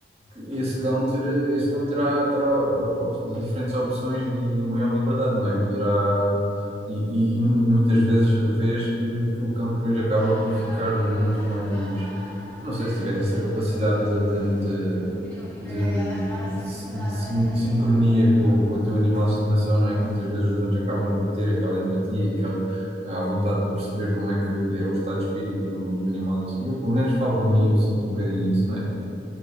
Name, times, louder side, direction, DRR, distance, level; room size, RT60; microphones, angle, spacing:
voice 1, 0.3-6.5 6.9-12.1 12.6-15.2 15.6-29.1, equal, 35° right, -5 dB, 1.3 m, -23 dB
sound 1, 10.2-20.2, equal, 5° left, 1.2 m, -42 dB
4.9 x 4.6 x 5.5 m, 2.7 s
head